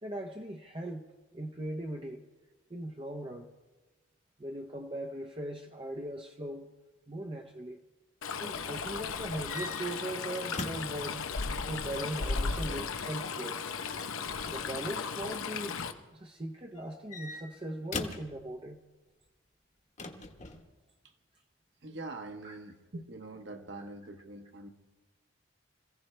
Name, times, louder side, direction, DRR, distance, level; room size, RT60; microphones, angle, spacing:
voice 1, 0.0-1.0 1.3-2.2 2.7-3.5 4.4-6.7 7.1-7.8 8.4-11.3 11.7-13.6 14.5-15.8 16.1-18.8 22.4-22.6, right 1 dB, 25° right, 2 dB, 0.7 m, -39 dB
Stream, 8.2-15.9, left 5 dB, 90° left, 0.9 m, -36 dB
sound 1, 9.4-11.0 12.3-13.1 14.6-15.0 16.7-18.3 20.0-20.6, left 3 dB, 35° left, 1.2 m, -41 dB
voice 2, 21.8-24.7, right 2 dB, 60° right, 5 dB, 1.3 m, -44 dB
26.0 x 16.0 x 3.3 m, 1.2 s
head